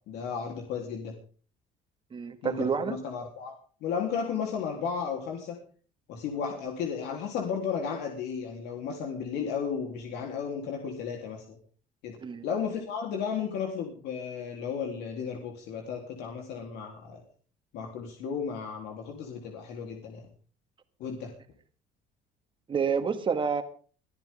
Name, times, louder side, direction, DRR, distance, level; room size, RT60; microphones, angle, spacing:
voice 1, 0.1-1.2 2.4-3.5 3.8-5.6 6.1-11.6 12.0-12.2 12.4-17.2 17.7-20.3 21.0-21.3, left 6 dB, 75° left, 2 dB, 3.7 m, -34 dB
voice 2, 2.1-3.0 12.2-12.5 22.7-23.6, right 6 dB, 30° right, 7 dB, 2.2 m, -28 dB
23.5 x 14.0 x 3.8 m, 0.41 s
cardioid pair, 135°, 17 cm